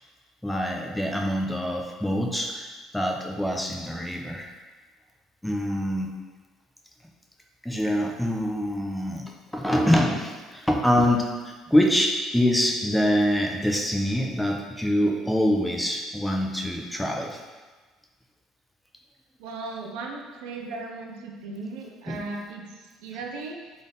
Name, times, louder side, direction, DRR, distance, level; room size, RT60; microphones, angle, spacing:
voice 1, 0.4-4.5 5.4-6.2 7.6-9.2 9.5-17.4 22.1-22.2, equal, 5° left, 1 dB, 0.6 m, -25 dB
voice 2, 19.4-23.7, right 3 dB, 80° right, 1 dB, 0.6 m, -37 dB
3.9 x 3.5 x 3.8 m, 1.3 s
supercardioid pair, 85°, 0 cm